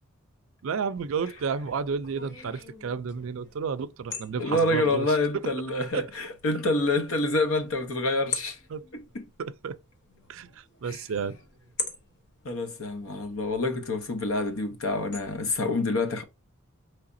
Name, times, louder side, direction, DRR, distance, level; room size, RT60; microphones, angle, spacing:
voice 1, 0.6-5.1 5.9-6.1 8.7-8.9 9.4-9.8 10.3-11.4, right 6 dB, 65° right, 0.4 m, -31 dB
sound 1, 1.0-15.6, left 4 dB, 55° left, 1.1 m, -43 dB
voice 2, 4.4-8.6 8.9-9.2 10.8-11.0 12.4-16.2, left 2 dB, 75° left, 0.9 m, -27 dB
4.8 x 3.3 x 2.6 m
head